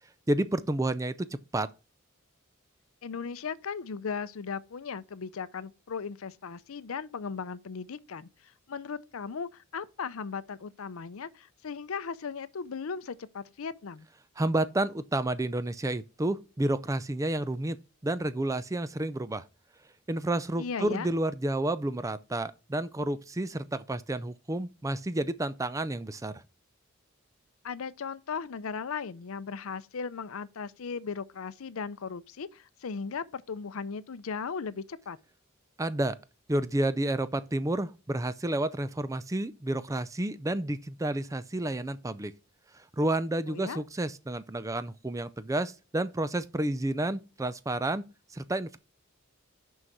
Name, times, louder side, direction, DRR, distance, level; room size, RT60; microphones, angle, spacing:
voice 1, 0.3-1.7 14.4-17.8 18.0-19.4 20.1-26.3 35.8-36.2 36.5-42.3 43.0-48.1 48.3-48.8, right 1 dB, 15° right, 0.5 m, -30 dB
voice 2, 3.0-14.1 20.6-21.1 27.6-35.2 43.5-43.8, left 5 dB, 75° left, 0.5 m, -37 dB
6.3 x 5.6 x 4.5 m
head